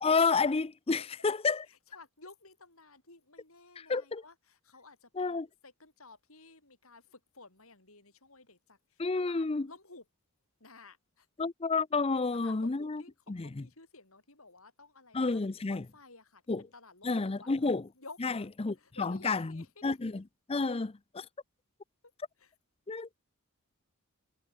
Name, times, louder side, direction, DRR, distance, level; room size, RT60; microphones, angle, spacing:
voice 1, 0.0-1.6 3.9-4.2 5.2-5.5 9.0-9.7 11.4-13.0 13.3-13.5 15.1-15.8 16.5-16.6 17.0-17.8 18.2-18.3 18.6-19.4 19.8-20.2 20.5-21.2 22.9-23.1, left 4 dB, 25° left, 0.5 m, -30 dB
voice 2, 1.7-10.1 10.6-11.3 12.1-15.4 15.7-18.5 18.7-20.0 22.4-22.5, left 3 dB, 70° left, 7.4 m, -54 dB
head